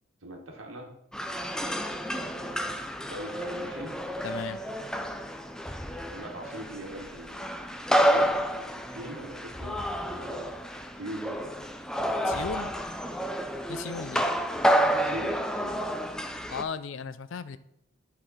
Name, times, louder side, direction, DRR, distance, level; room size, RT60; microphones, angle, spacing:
voice 1, 0.2-0.9 2.1-4.0 6.1-11.3 15.0-15.8, right 1 dB, 75° right, 1 dB, 1.5 m, -42 dB
sound 1, 1.1-16.6, equal, 5° left, 0.4 m, -30 dB
voice 2, 4.2-4.6 12.2-12.8 13.7-14.3 16.5-17.6, left 5 dB, 65° left, 14 dB, 0.4 m, -36 dB
11.0 x 4.1 x 4.1 m, 0.81 s
head